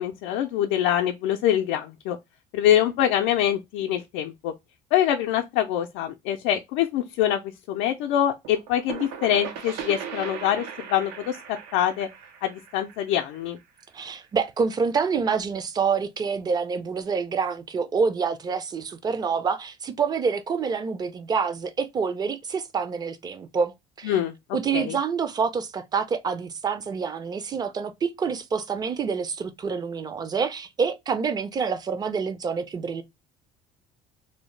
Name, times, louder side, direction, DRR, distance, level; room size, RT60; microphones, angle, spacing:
voice 1, 0.0-2.2 2.5-4.5 4.9-12.1 12.4-13.6 24.0-24.3 24.7-25.0, left 11 dB, 90° left, 0.4 m, -24 dB
sound 1, 8.4-14.0, right 8 dB, 85° right, 0.8 m, -38 dB
voice 2, 13.9-24.2 24.5-33.0, right 5 dB, 25° right, 0.4 m, -27 dB
2.7 x 2.1 x 3.1 m
cardioid pair, 125°, 17 cm